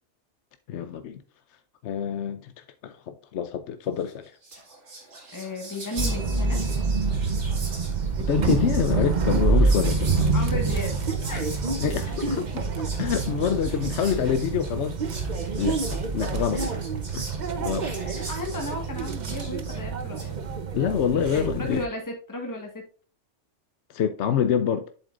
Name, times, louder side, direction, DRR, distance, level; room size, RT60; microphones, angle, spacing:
voice 1, 0.7-1.2 1.8-4.4 8.2-10.3 11.8-12.7 13.0-15.0 15.6-16.6 17.1-17.3 17.6-17.9 20.7-21.8 23.9-24.9, left 8 dB, 70° left, 0.9 m, -26 dB
Whispering, 4.1-4.2 4.4-20.3, right 2 dB, 70° right, 2.5 m, -41 dB
voice 2, 5.3-6.6 10.3-11.0 11.2-11.6 16.5-16.7 18.2-20.4 21.3-22.8, left 1 dB, 15° left, 1.5 m, -34 dB
sound 1, 6.0-21.9, right 4 dB, 45° right, 0.8 m, -27 dB
8.0 x 7.5 x 2.5 m
omnidirectional pair, 1.2 m